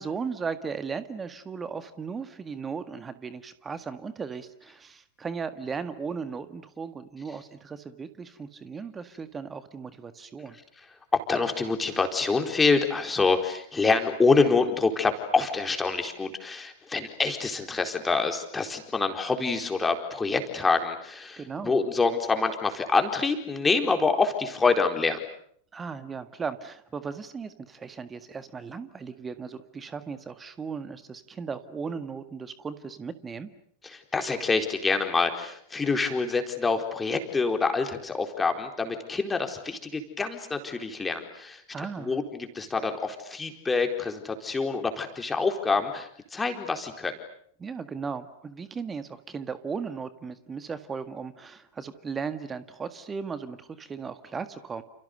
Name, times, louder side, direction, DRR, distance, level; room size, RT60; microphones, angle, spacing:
voice 1, 0.0-10.6 21.4-21.8 25.7-33.5 41.7-42.2 47.6-54.8, right 5 dB, 15° right, 11 dB, 1.8 m, -36 dB
voice 2, 11.1-25.2 33.8-47.1, left 4 dB, 10° left, 5 dB, 4.3 m, -26 dB
29.5 x 29.5 x 6.7 m, 0.65 s
figure-of-eight pair, 90°, 0 cm